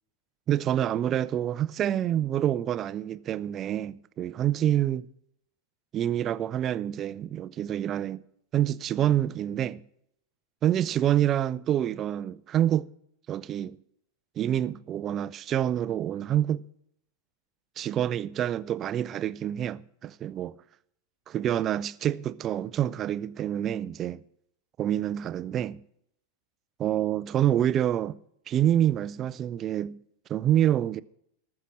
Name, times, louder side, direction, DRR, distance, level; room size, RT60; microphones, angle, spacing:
voice 1, 0.5-5.1 5.9-8.2 8.5-9.8 10.6-12.9 13.3-13.8 14.4-16.7 17.8-20.5 21.3-24.2 24.8-25.8 26.8-28.2 28.5-30.0 30.3-31.0, right 11 dB, 30° right, 0.4 m, -27 dB
13.5 x 7.2 x 6.3 m
figure-of-eight pair, 90°, 0 cm